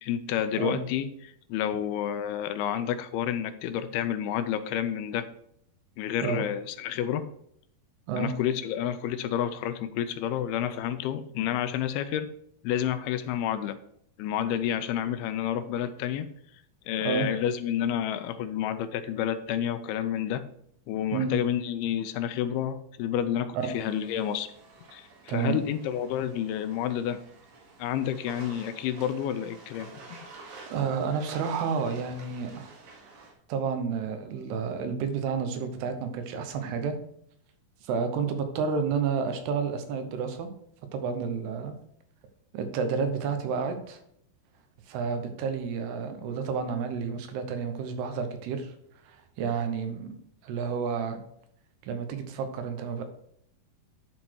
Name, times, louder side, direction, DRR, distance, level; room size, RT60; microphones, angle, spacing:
voice 1, 0.0-5.3 6.0-7.3 8.2-12.3 12.6-13.8 14.2-16.3 16.9-20.4 20.9-24.5 24.9-27.2 27.8-29.9, left 10 dB, 85° left, 11 dB, 2.5 m, -30 dB
sound 1, 23.6-33.3, right 3 dB, 65° right, 3.4 m, -50 dB
voice 2, 25.3-25.6 30.7-32.8 33.5-37.0 37.8-40.5 40.9-41.7 42.5-44.0 44.9-48.7 49.0-50.2 50.4-51.2 51.8-53.0, right 6 dB, 85° right, 7 dB, 3.1 m, -30 dB
11.0 x 4.1 x 4.6 m, 0.71 s
omnidirectional pair, 4.6 m